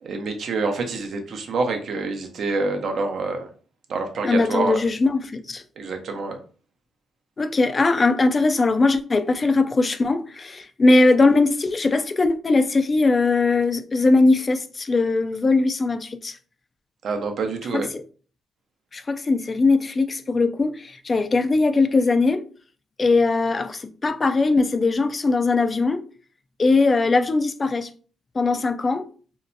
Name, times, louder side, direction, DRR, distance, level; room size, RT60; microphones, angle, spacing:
voice 1, 0.0-3.5 3.9-4.8 5.8-6.4 17.0-17.9, right 3 dB, 65° right, 0.6 m, -26 dB
voice 2, 4.2-5.6 7.4-16.4 17.7-18.0 18.9-22.5 23.0-26.1 26.6-27.9 28.3-29.1, left 3 dB, 35° left, 0.3 m, -20 dB
2.7 x 2.1 x 2.5 m
cardioid pair, 70°, 0 cm